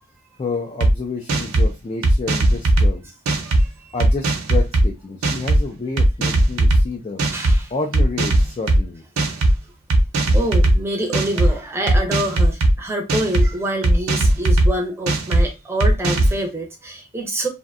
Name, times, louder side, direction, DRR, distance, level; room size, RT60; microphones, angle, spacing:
voice 1, 0.4-3.0 3.9-7.2 7.7-9.0, left 3 dB, 25° left, 2 dB, 0.3 m, -29 dB
sound 1, 0.8-0.9 1.3-1.7 2.0-2.9 3.3-3.6 4.0-4.8 5.2-5.6 6.0-6.8 7.2-7.6 7.9-8.8 9.2-9.6 9.9-10.8 11.1-11.5 11.9-12.7 13.1-13.5 13.8-14.7 15.1-15.4 15.8-16.3, right 1 dB, 85° right, 0.6 m, -17 dB
voice 2, 3.4-3.9 7.3-7.7 9.3-9.4 10.3-17.5, right 1 dB, 10° right, 2 dB, 0.6 m, -26 dB
2.6 x 2.1 x 2.4 m, 0.24 s
head